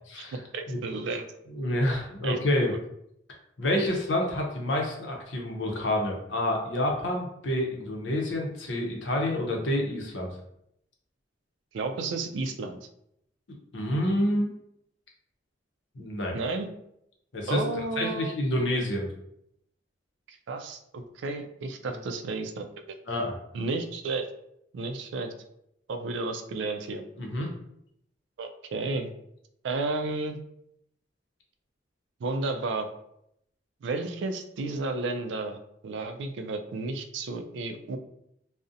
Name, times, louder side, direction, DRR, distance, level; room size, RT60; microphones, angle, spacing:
voice 1, 0.2-1.3 2.2-2.4 2.7-2.8 11.7-12.8 16.3-16.7 17.5-18.3 20.3-22.7 23.5-24.3 24.7-25.3 25.9-27.0 28.4-29.1 29.6-30.4 32.2-32.9 33.8-35.6 35.8-38.0, right 3 dB, 80° right, 7 dB, 0.3 m, -32 dB
voice 2, 1.5-2.7 3.6-10.4 13.5-14.5 15.9-16.3 17.3-17.6 18.0-19.1 21.8-21.9 23.1-23.4 27.2-27.5, left 1 dB, 85° left, 0 dB, 0.6 m, -28 dB
2.4 x 2.0 x 2.6 m, 0.77 s
head